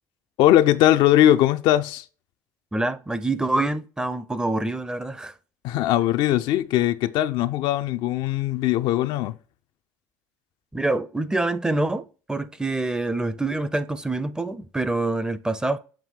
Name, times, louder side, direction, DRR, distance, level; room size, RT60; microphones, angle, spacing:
voice 1, 0.4-2.0 5.6-9.3, left 13 dB, 65° left, 0.5 m, -20 dB
voice 2, 2.7-5.3 10.7-15.8, right 2 dB, 10° right, 0.6 m, -26 dB
7.5 x 2.7 x 5.3 m
hypercardioid pair, 80°, 9 cm